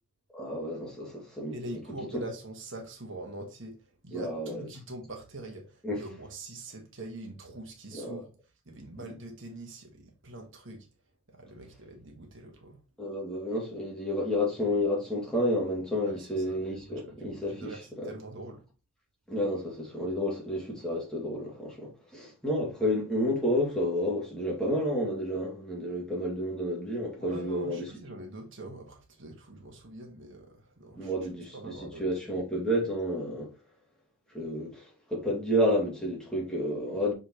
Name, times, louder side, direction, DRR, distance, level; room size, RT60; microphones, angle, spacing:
voice 1, 0.3-1.6 2.1-2.2 4.1-4.6 5.8-6.0 7.9-8.2 9.0-9.1 13.0-18.1 19.3-27.8 31.0-33.5 34.3-34.8 35.1-37.1, equal, 5° left, 2.4 m, -30 dB
voice 2, 1.5-3.8 4.0-8.3 8.7-10.9 11.3-12.8 16.0-18.6 27.2-31.1 31.5-32.0, right 1 dB, 60° right, 1.7 m, -43 dB
6.6 x 5.5 x 3.1 m
head